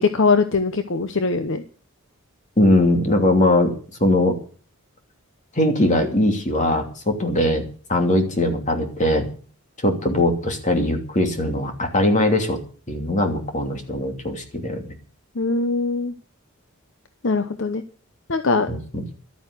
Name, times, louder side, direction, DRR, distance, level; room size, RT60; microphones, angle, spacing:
voice 1, 0.0-1.6 15.3-16.1 17.2-17.8 18.3-18.7, left 4 dB, 60° left, 9 dB, 0.9 m, -21 dB
voice 2, 2.6-3.7 4.0-4.4 5.5-7.6 7.9-9.3 9.8-12.6 12.9-14.9 18.7-19.0, left 1 dB, 35° left, 4 dB, 2.8 m, -20 dB
12.5 x 9.2 x 8.3 m, 0.41 s
head